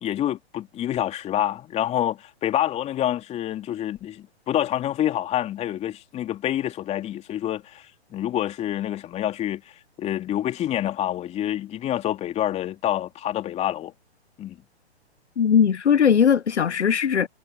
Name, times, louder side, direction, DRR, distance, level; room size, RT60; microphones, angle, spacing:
voice 1, 0.0-7.8 8.1-9.6 10.0-13.9 14.4-14.6, left 12 dB, 20° left, 3.1 m, -27 dB
voice 2, 15.4-17.3, left 7 dB, 90° left, 0.8 m, -19 dB
hypercardioid pair, 135°, 33 cm